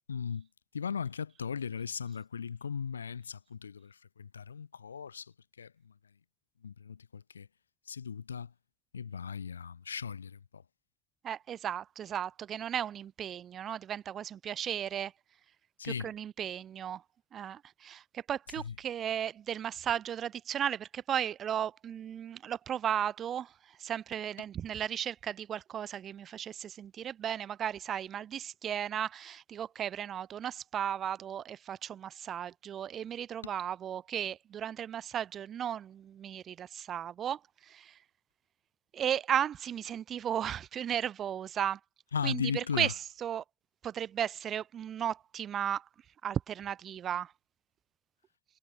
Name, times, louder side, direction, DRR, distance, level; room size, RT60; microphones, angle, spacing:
voice 1, 0.1-0.5 0.7-5.9 6.6-7.5 7.9-8.5 8.9-10.6 15.8-16.1 18.5-18.8 33.4-33.5 42.1-43.0, left 6 dB, 85° left, 0.7 m, -37 dB
voice 2, 11.2-15.1 15.8-17.0 17.3-23.5 23.8-37.4 37.7-38.0 38.9-41.8 42.2-43.4 43.8-45.8 46.2-47.3, right 9 dB, 40° right, 0.7 m, -35 dB
figure-of-eight pair, 65°, 0 cm